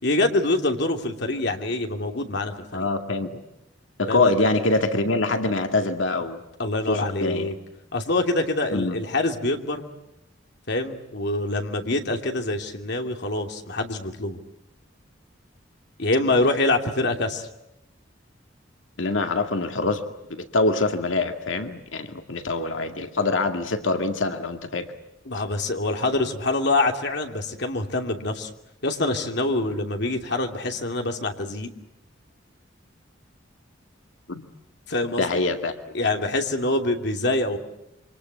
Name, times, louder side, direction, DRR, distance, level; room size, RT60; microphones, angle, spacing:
voice 1, 0.0-2.9 4.1-4.3 6.6-7.5 7.9-9.9 10.7-14.4 16.0-17.5 25.2-28.5 28.8-31.7 34.9-35.4 35.9-37.6, left 2 dB, 60° left, 4 dB, 2.9 m, -25 dB
voice 2, 2.7-3.3 4.0-6.4 6.9-7.5 8.7-9.0 19.0-20.0 20.3-24.9 34.3-34.4 35.2-35.7, left 2 dB, 85° left, 6 dB, 2.1 m, -24 dB
27.5 x 25.0 x 8.1 m, 0.87 s
head